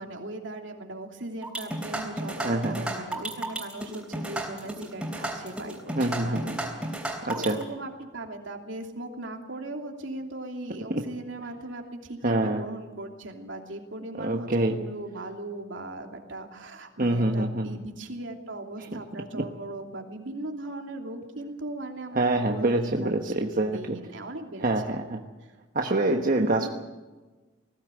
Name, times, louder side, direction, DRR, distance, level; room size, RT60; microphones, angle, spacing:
voice 1, 0.0-6.8 7.3-25.0 25.4-25.5 26.4-26.7, right 2 dB, 75° right, 3 dB, 3.0 m, -38 dB
sound 1, 1.4-7.6, right 1 dB, 5° right, 3.5 m, -33 dB
voice 2, 6.0-6.6 7.2-7.6 12.2-12.6 14.2-14.8 17.0-17.7 22.2-24.0 24.6-25.2 25.7-26.7, right 2 dB, 45° right, 3 dB, 1.2 m, -25 dB
20.0 x 16.5 x 9.1 m, 1.2 s
head